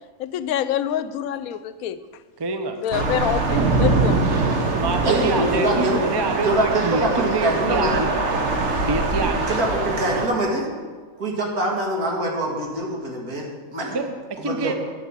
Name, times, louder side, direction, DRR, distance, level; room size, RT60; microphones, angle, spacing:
voice 1, 0.2-2.0 2.8-4.2, left 10 dB, 75° left, 13 dB, 1.0 m, -26 dB
voice 2, 2.4-2.8 4.8-8.1 8.8-9.7 13.9-14.7, right 3 dB, 30° right, 6 dB, 0.4 m, -26 dB
Thunder / Rain, 2.9-10.3, right 3 dB, 55° right, 1.4 m, -23 dB
voice 3, 5.0-6.0 6.5-7.9 9.5-10.7 11.2-14.0 14.4-14.7, right 1 dB, 85° right, -1 dB, 2.6 m, -24 dB
9.8 x 7.3 x 7.3 m, 1.5 s
omnidirectional pair, 1.5 m